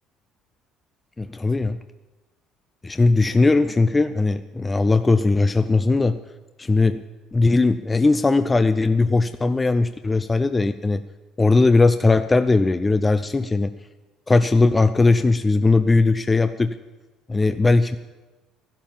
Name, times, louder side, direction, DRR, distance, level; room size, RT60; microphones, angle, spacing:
voice 1, 1.2-1.8 2.8-6.2 6.6-7.0 7.3-11.0 11.4-13.7 14.3-16.7 17.3-18.0, left 3 dB, 15° left, 10 dB, 0.5 m, -19 dB
14.0 x 11.5 x 7.3 m, 1.2 s
cardioid pair, 110°, 0 cm